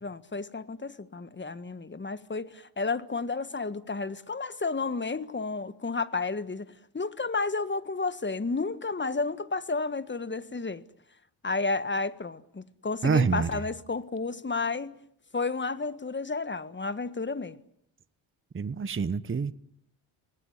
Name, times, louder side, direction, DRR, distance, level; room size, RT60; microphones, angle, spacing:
voice 1, 0.0-10.8 11.4-15.0 15.3-17.6, left 3 dB, 20° left, 1.6 m, -32 dB
voice 2, 13.0-13.5 18.5-19.5, right 5 dB, 25° right, 1.0 m, -26 dB
25.5 x 19.5 x 9.8 m
supercardioid pair, 65°, 50 cm